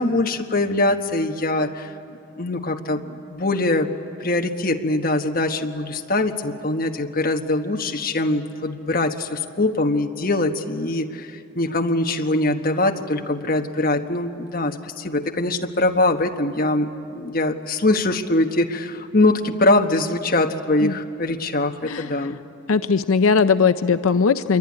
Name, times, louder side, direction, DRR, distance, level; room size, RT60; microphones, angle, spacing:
voice 1, 0.0-1.9 2.3-3.9 4.2-22.4, left 2 dB, 45° left, 4 dB, 1.4 m, -22 dB
voice 2, 22.7-24.6, left 5 dB, 85° left, 11 dB, 0.6 m, -19 dB
27.0 x 23.0 x 9.7 m, 2.6 s
head